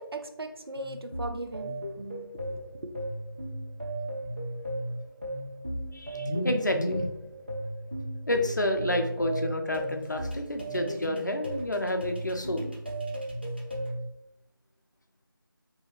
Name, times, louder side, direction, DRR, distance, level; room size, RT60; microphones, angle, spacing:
voice 1, 0.0-1.8 2.4-2.9, right 2 dB, 90° right, 7 dB, 0.4 m, -38 dB
sound 1, 0.8-14.0, right 1 dB, 25° right, 0.4 m, -36 dB
voice 2, 5.9-7.1 8.3-12.7, left 1 dB, 55° left, 5 dB, 0.5 m, -29 dB
2.7 x 2.7 x 2.9 m, 0.84 s
figure-of-eight pair, 175°, 12 cm